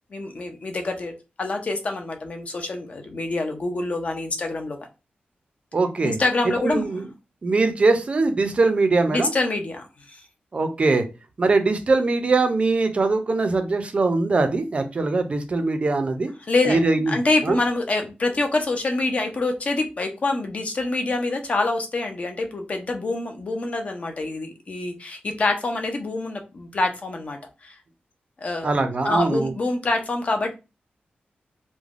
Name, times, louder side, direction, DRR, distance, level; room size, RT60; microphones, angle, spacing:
voice 1, 0.1-1.1 1.4-4.8 6.0-6.9 9.1-10.2 16.5-16.8 17.1-27.8 28.4-28.7 29.0-30.5, left 2 dB, 40° left, 4 dB, 0.5 m, -26 dB
voice 2, 5.7-6.2 6.6-7.0 7.4-9.3 10.5-11.0 11.4-16.3 16.7-17.2 17.4-17.6 28.6-29.5, right 3 dB, 35° right, 8 dB, 0.4 m, -21 dB
3.2 x 2.1 x 2.4 m, 0.28 s
wide cardioid pair, 165°, 3 cm